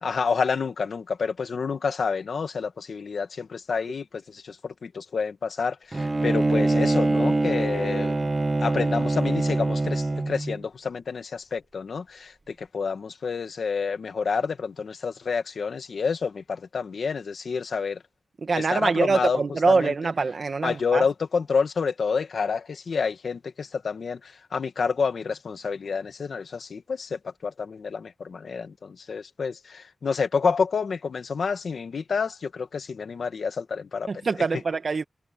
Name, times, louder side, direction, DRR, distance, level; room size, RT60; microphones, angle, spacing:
voice 1, 0.0-8.2 8.6-18.0 18.5-19.4 19.7-19.9 20.6-34.1, left 5 dB, 90° left, 1.8 m, -28 dB
Bowed string instrument, 5.9-10.6, right 2 dB, 30° right, 0.8 m, -24 dB
voice 2, 18.4-21.1 34.1-35.0, right 4 dB, 60° right, 1.9 m, -24 dB
wide cardioid pair, 110°, 0 cm